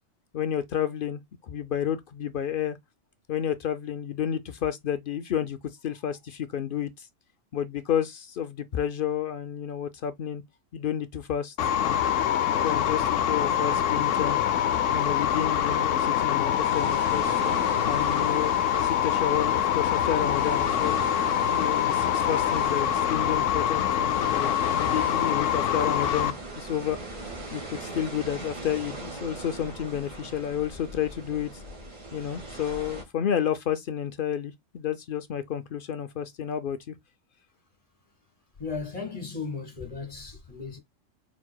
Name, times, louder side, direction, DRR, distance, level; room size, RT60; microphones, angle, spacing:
voice 1, 0.3-2.8 3.3-5.6 5.8-7.1 7.5-10.4 10.7-12.0 12.4-14.4 14.9-17.4 17.9-21.0 21.5-27.0 27.5-31.6 32.1-36.9, left 9 dB, 60° left, 0.5 m, -31 dB
sound 1, 11.6-26.3, left 10 dB, 80° left, 0.9 m, -25 dB
sound 2, 16.6-33.0, right 2 dB, 85° right, 2.3 m, -40 dB
voice 2, 38.6-40.8, left 4 dB, 30° left, 1.4 m, -36 dB
4.6 x 4.6 x 2.2 m
omnidirectional pair, 1.3 m